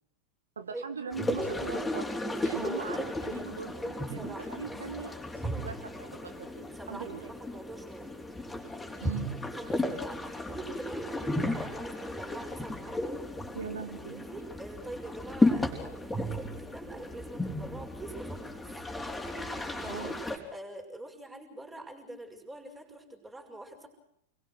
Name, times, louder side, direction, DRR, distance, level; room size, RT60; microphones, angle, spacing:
voice 1, 0.6-2.1 2.4-7.3 9.0-9.3 13.5-14.3 19.8-20.2, right 5 dB, 70° right, 8 dB, 1.6 m, -41 dB
sound 1, 1.1-20.4, left 1 dB, 10° left, 4.2 m, -34 dB
voice 2, 2.5-2.9 4.1-4.5 5.4-5.7 6.7-8.1 9.5-13.2 14.1-18.7 19.8-20.0 20.5-23.9, right 2 dB, 10° right, 2 dB, 5.8 m, -45 dB
29.0 x 22.0 x 6.4 m, 0.75 s
figure-of-eight pair, 90°, 0 cm